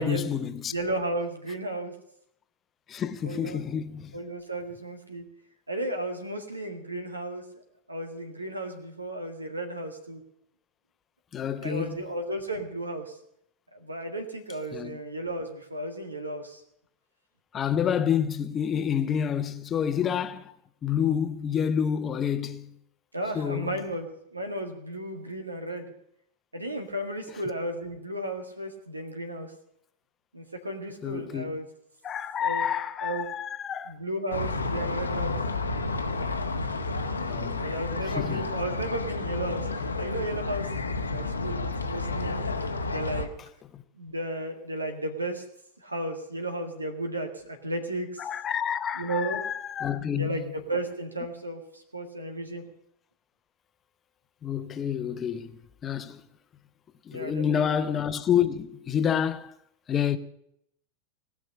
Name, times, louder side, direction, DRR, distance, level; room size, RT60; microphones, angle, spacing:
voice 1, 0.0-0.7 2.9-4.1 11.3-12.0 14.7-15.0 17.5-20.5 20.8-22.7 23.3-23.8 31.0-31.5 32.0-33.9 37.3-37.6 38.2-38.5 42.3-42.4 43.7-43.8 48.2-50.4 54.4-55.5 55.8-56.2 57.1-59.5 59.9-60.2, left 8 dB, 25° left, 0.9 m, -28 dB
voice 2, 0.7-1.9 3.2-3.6 4.1-5.3 5.7-7.4 7.9-10.2 11.6-13.2 13.7-16.6 23.1-25.9 26.5-29.5 30.3-31.7 32.4-32.6 33.0-33.2 33.8-35.4 37.6-42.4 42.8-43.3 43.9-45.4 45.8-48.3 48.9-49.4 50.1-52.6 57.1-57.8, right 1 dB, 80° right, 1.8 m, -34 dB
sound 1, 34.3-43.3, left 3 dB, 80° left, 1.2 m, -31 dB
18.5 x 6.4 x 9.8 m
figure-of-eight pair, 90°, 0 cm